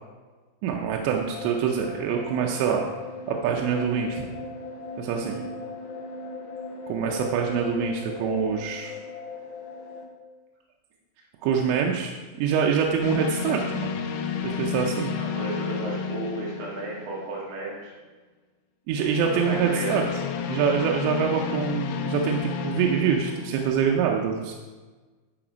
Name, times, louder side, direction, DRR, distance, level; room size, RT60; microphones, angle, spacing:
voice 1, 0.6-2.9 3.3-4.2 5.0-5.4 6.9-9.0 11.4-13.9 14.4-15.1 18.9-20.1 20.5-24.5, right 7 dB, 85° right, 1 dB, 2.9 m, -25 dB
sound 1, 1.1-10.0, left 3 dB, 65° left, 2.4 m, -38 dB
sound 2, 13.0-17.5 19.0-23.8, left 7 dB, 85° left, 2.8 m, -31 dB
voice 2, 15.2-17.9 19.5-20.0, right 2 dB, 45° right, -4 dB, 2.4 m, -34 dB
12.0 x 4.2 x 5.0 m, 1.3 s
omnidirectional pair, 4.9 m